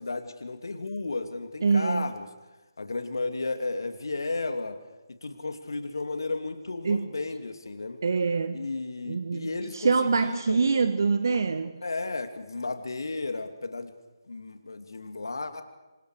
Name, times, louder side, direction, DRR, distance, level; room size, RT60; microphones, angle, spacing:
voice 1, 0.0-2.3 2.8-4.8 5.1-8.0 8.5-10.7 11.8-13.9 14.3-15.6, left 3 dB, 65° left, 7 dB, 2.7 m, -33 dB
voice 2, 1.6-2.1 6.8-7.1 8.0-8.7 9.1-9.5 9.7-11.8, right 4 dB, 55° right, 10 dB, 1.2 m, -25 dB
27.0 x 25.5 x 4.9 m, 1.1 s
figure-of-eight pair, 150°, 2 cm